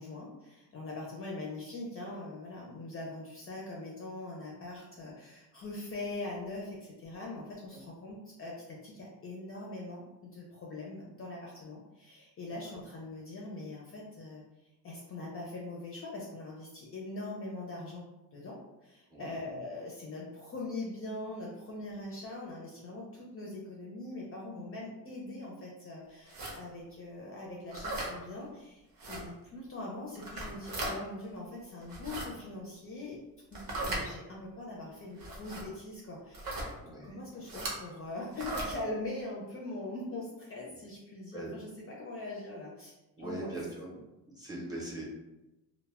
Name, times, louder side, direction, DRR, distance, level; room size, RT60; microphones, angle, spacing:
voice 1, 0.0-14.4 14.8-18.0 18.3-18.6 18.8-33.2 33.5-41.7 42.0-42.9 43.2-43.5, left 2 dB, 35° left, -3 dB, 0.4 m, -42 dB
voice 2, 19.1-19.5 36.8-37.2 40.7-40.8 41.3-41.5 43.2-44.0 44.3-45.0, right 2 dB, 10° right, -5 dB, 0.6 m, -41 dB
sound 1, 26.3-26.6 27.7-28.1 29.0-29.2 30.2-30.9 31.8-32.3 33.5-34.0 35.2-35.6 36.3-36.7 37.5-37.8 38.3-38.7, right 2 dB, 60° right, 0.8 m, -37 dB
2.1 x 2.0 x 3.4 m, 0.99 s
cardioid pair, 155°, 39 cm